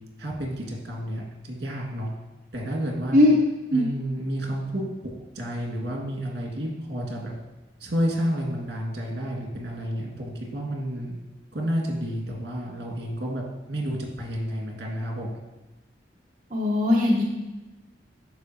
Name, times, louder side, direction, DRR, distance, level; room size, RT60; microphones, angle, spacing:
voice 1, 0.2-2.1 2.5-3.2 3.7-7.3 7.8-11.1 11.5-15.4, equal, 65° right, 0 dB, 1.8 m, -30 dB
voice 2, 16.5-17.2, left 1 dB, 40° right, -4 dB, 0.7 m, -19 dB
12.0 x 4.6 x 2.8 m, 1.1 s
head